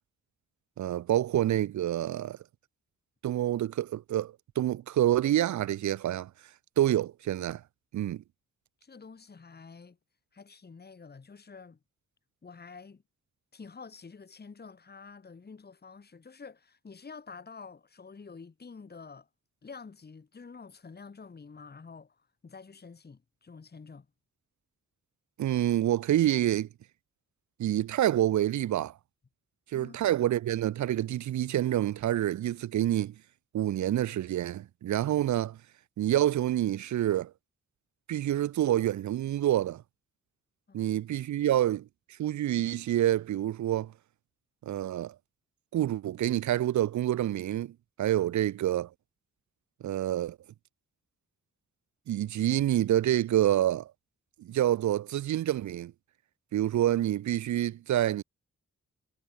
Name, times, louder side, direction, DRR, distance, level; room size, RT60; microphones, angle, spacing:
voice 1, 0.8-2.4 3.2-6.3 6.8-7.6 7.9-8.2 25.4-26.7 27.6-28.9 29.7-33.1 33.5-35.6 36.0-37.3 38.1-39.8 40.7-41.9 42.2-43.9 44.6-45.1 45.7-48.9 49.8-50.4 52.1-53.9 54.4-55.9 56.5-58.2, right 12 dB, 70° right, 0.5 m, -27 dB
voice 2, 8.8-10.0 10.3-11.8 12.4-13.0 13.5-19.3 19.6-24.1 29.7-30.0 40.7-40.9 41.4-41.5, left 5 dB, 30° left, 1.6 m, -48 dB
wide cardioid pair, 125°, 30 cm